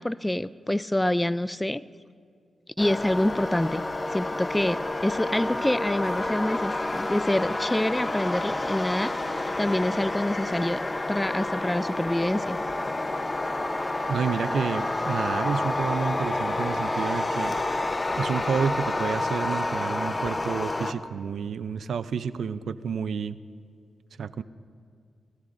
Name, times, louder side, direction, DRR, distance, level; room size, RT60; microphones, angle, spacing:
voice 1, 0.0-1.8 2.8-3.8 4.1-9.1 9.6-12.6, left 1 dB, 10° left, 16 dB, 0.4 m, -26 dB
sound 1, 2.8-20.9, left 2 dB, 25° left, 0.9 m, -29 dB
voice 2, 14.1-17.6 18.2-23.4 24.2-24.4, right 6 dB, 80° right, 14 dB, 0.5 m, -30 dB
27.0 x 19.5 x 2.6 m, 2.2 s
cardioid pair, 65°, 0 cm